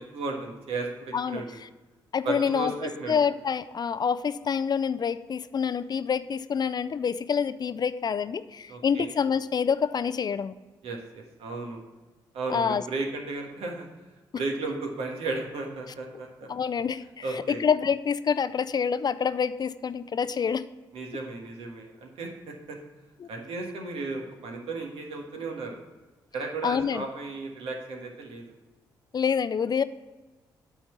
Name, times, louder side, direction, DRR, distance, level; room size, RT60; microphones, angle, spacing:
voice 1, 0.0-1.6 2.2-3.1 8.7-9.1 10.8-11.8 12.3-13.9 14.4-16.5 17.2-17.6 20.9-22.8 23.3-25.8 26.3-28.4, right 3 dB, 70° right, 2 dB, 1.4 m, -34 dB
voice 2, 2.1-2.7 3.1-10.5 12.5-12.8 16.5-20.6 23.2-23.3 26.6-27.1 29.1-29.8, left 6 dB, 40° left, 14 dB, 0.4 m, -27 dB
8.7 x 4.0 x 7.1 m, 1.2 s
hypercardioid pair, 45°, 10 cm